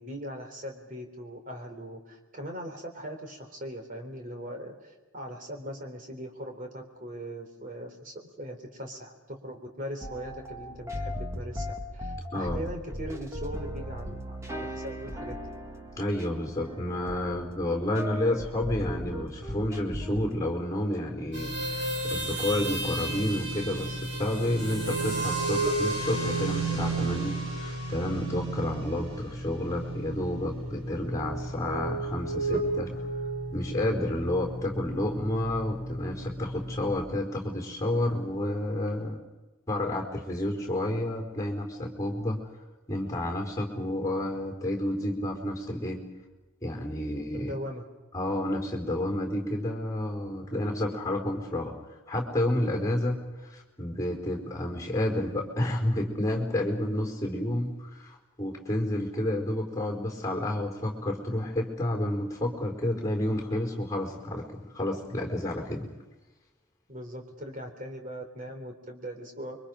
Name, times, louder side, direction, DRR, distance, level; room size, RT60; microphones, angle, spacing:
voice 1, 0.0-15.5 47.3-47.8 66.9-69.6, equal, 35° right, 3 dB, 3.7 m, -40 dB
sound 1, 10.0-20.4, equal, 15° right, 1.6 m, -38 dB
voice 2, 12.3-12.7 16.0-32.9 33.5-39.2 39.7-42.4 42.9-46.1 46.6-47.6 48.1-51.8 52.1-65.9, left 1 dB, 15° left, 1 dB, 4.6 m, -30 dB
sound 2, 21.3-37.0, right 2 dB, 55° right, 5.8 m, -32 dB
29.5 x 24.0 x 5.2 m, 1.1 s
head